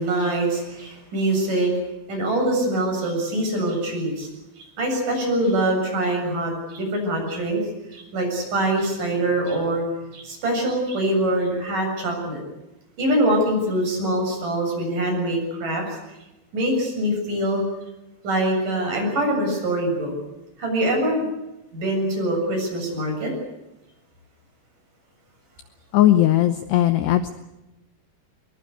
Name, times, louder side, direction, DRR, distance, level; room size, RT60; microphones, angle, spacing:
voice 1, 0.0-1.7 2.1-4.3 4.6-7.6 7.9-9.8 10.1-12.4 13.0-15.8 16.5-17.6 18.2-20.1 20.6-21.3 21.7-23.3, right 1 dB, 40° right, 2 dB, 8.7 m, -24 dB
voice 2, 25.9-27.3, left 13 dB, 75° left, 9 dB, 2.6 m, -18 dB
24.0 x 22.0 x 8.3 m, 0.97 s
omnidirectional pair, 5.8 m